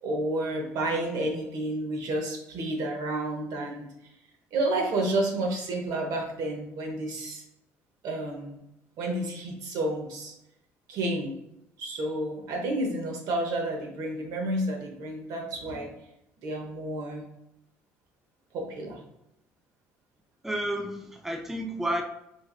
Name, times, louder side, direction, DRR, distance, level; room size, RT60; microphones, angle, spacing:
voice 1, 0.0-3.9 4.5-7.4 8.0-8.6 9.0-10.3 10.9-11.4 11.8-15.9 16.4-17.3 18.5-19.0, right 1 dB, 70° right, 1 dB, 0.9 m, -30 dB
voice 2, 20.4-22.0, right 1 dB, 5° right, 3 dB, 0.4 m, -31 dB
4.4 x 2.4 x 2.3 m, 0.84 s
supercardioid pair, 80°, 6 cm